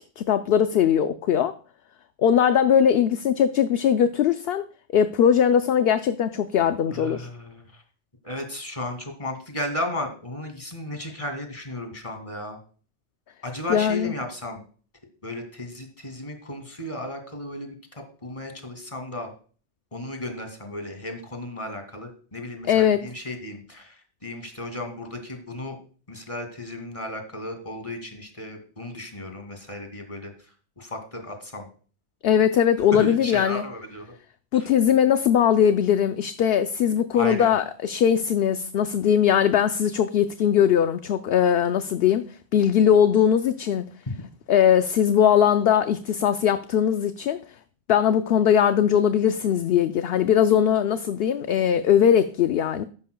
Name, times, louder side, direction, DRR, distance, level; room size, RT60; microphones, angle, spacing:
voice 1, 0.0-1.5 2.2-4.7 4.9-7.3 13.7-14.1 22.6-23.0 32.2-33.6 34.5-43.9 44.5-47.4 47.9-52.8, left 9 dB, 70° left, 0.8 m, -20 dB
voice 2, 6.9-7.8 8.2-12.6 13.4-14.6 15.2-17.8 18.2-19.3 19.9-25.8 26.1-30.3 30.8-31.6 32.9-34.0 37.1-37.5 44.1-44.3, left 1 dB, 30° left, 2.4 m, -34 dB
14.0 x 11.5 x 2.2 m
omnidirectional pair, 1.1 m